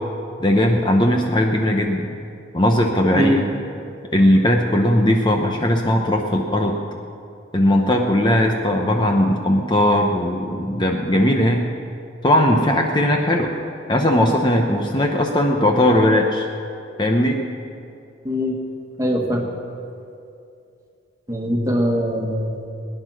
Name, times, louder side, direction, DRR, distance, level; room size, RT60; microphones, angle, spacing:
voice 1, 0.4-2.1 2.5-3.5 4.1-6.7 7.5-11.6 12.2-13.5 13.9-16.5 17.0-17.4, left 1 dB, 25° left, 2 dB, 0.8 m, -18 dB
voice 2, 3.1-3.5 18.2-18.6 19.0-19.5 21.3-22.7, equal, 15° right, 1 dB, 1.5 m, -22 dB
19.0 x 10.0 x 6.3 m, 2.6 s
head